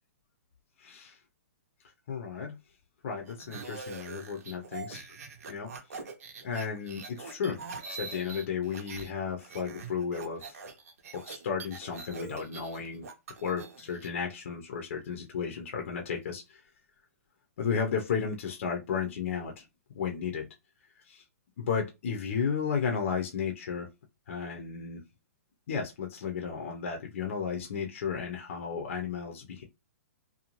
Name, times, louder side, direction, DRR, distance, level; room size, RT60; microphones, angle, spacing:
voice 1, 0.8-1.2 2.1-2.6 3.0-5.2 5.5-6.0 6.4-7.6 7.9-10.6 11.1-13.1 13.4-16.6 17.6-19.6 19.9-20.5 21.1-21.2 21.6-23.9 24.3-25.0 25.7-29.6, left 6 dB, 50° left, 2 dB, 0.6 m, -33 dB
sound 1, 3.3-9.1 9.4-14.1, right 5 dB, 65° right, 0.7 m, -44 dB
2.6 x 2.2 x 2.9 m, 0.23 s
hypercardioid pair, 165°, 9 cm